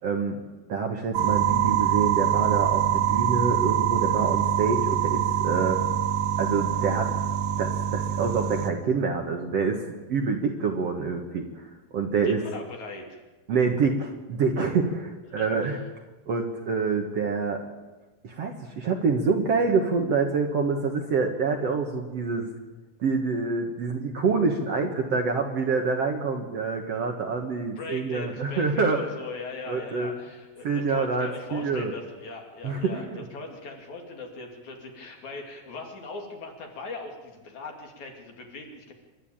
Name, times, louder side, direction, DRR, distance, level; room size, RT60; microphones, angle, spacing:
voice 1, 0.0-0.4 0.7-5.8 6.4-7.1 7.6-9.8 10.1-11.7 11.9-12.4 13.5-15.8 16.3-17.6 18.2-22.5 23.0-29.0 29.7-30.1 30.6-31.9 32.6-33.2, right 4 dB, 55° right, 3 dB, 2.0 m, -26 dB
sound 1, 1.1-8.7, right 10 dB, 85° right, 3.6 m, -24 dB
voice 2, 12.2-13.2 15.3-15.8 27.8-38.9, left 3 dB, 55° left, 2 dB, 3.8 m, -40 dB
28.0 x 12.5 x 8.8 m, 1.2 s
omnidirectional pair, 4.2 m